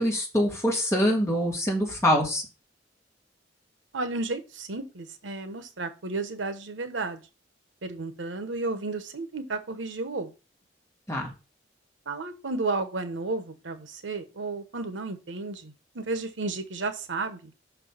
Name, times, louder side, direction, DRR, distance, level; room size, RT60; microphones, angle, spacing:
voice 1, 0.0-2.4 11.1-11.3, equal, 15° left, -1 dB, 2.2 m, -24 dB
voice 2, 3.9-7.2 7.8-10.3 12.1-17.5, right 3 dB, 90° right, 9 dB, 1.0 m, -33 dB
5.9 x 4.6 x 5.6 m, 0.31 s
head